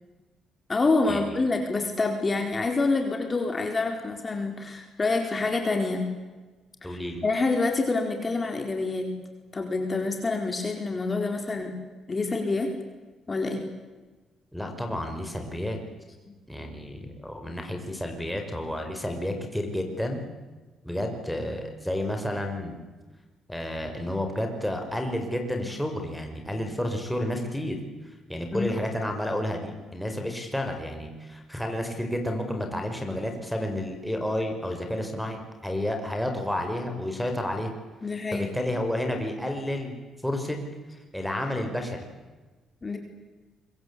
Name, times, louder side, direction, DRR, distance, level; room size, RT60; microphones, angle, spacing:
voice 1, 0.7-6.1 6.8-9.1 9.5-11.7 12.1-12.7 13.3-13.6 28.5-28.7 38.0-38.5 42.8-43.0, left 3 dB, 30° left, 4 dB, 4.3 m, -27 dB
voice 2, 6.8-7.2 14.5-15.8 16.5-20.2 20.8-22.8 23.5-27.8 28.3-37.7 38.3-39.9 40.2-40.6 41.1-42.0, left 1 dB, 5° left, 3 dB, 5.6 m, -31 dB
25.5 x 23.5 x 8.6 m, 1.3 s
cardioid pair, 90°, 0 cm